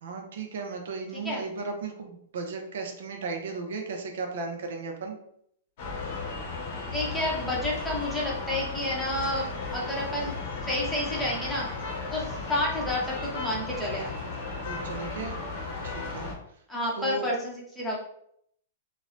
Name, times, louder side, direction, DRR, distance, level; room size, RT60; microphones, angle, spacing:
voice 1, 0.0-5.2 14.6-15.3 15.8-16.3 17.0-17.3, right 4 dB, 70° right, 3 dB, 0.5 m, -35 dB
sound 1, 5.8-16.3, left 3 dB, 50° left, 0.8 m, -35 dB
voice 2, 6.9-11.7 12.1-14.1 16.7-18.0, left 1 dB, 5° left, -5 dB, 0.7 m, -30 dB
3.0 x 2.1 x 2.5 m, 0.70 s
hypercardioid pair, 145°, 0 cm